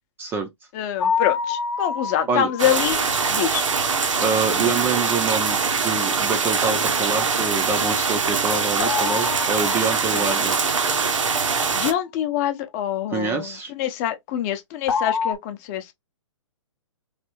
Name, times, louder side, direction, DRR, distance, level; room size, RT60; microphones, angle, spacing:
voice 1, 0.7-3.0 3.3-3.7 10.1-10.3 11.7-15.9, left 10 dB, 30° left, 0.6 m, -25 dB
sound 1, 1.0-4.0 8.8-11.0 14.9-15.3, left 6 dB, 70° left, 0.8 m, -28 dB
sound 2, 2.6-11.9, right 5 dB, 80° right, 0.8 m, -23 dB
voice 2, 4.2-5.6 5.8-10.5 13.1-13.7, right 5 dB, 15° right, 0.4 m, -26 dB
3.3 x 2.6 x 2.9 m
hypercardioid pair, 130°, 16 cm